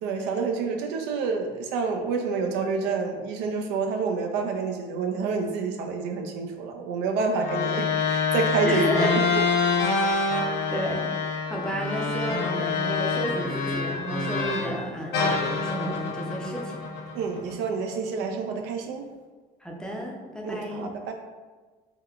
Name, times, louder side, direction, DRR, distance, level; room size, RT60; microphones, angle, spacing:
voice 1, 0.0-8.8 17.1-19.0 20.4-21.1, right 5 dB, 90° right, 3 dB, 0.4 m, -28 dB
sound 1, 7.4-14.8 15.1-17.5, left 4 dB, 85° left, 0.6 m, -26 dB
voice 2, 8.6-9.3 10.4-11.1 11.5-16.8 17.4-17.6 19.6-20.9, equal, 5° left, -2 dB, 0.4 m, -31 dB
3.5 x 2.1 x 2.3 m, 1.3 s
cardioid pair, 110°, 17 cm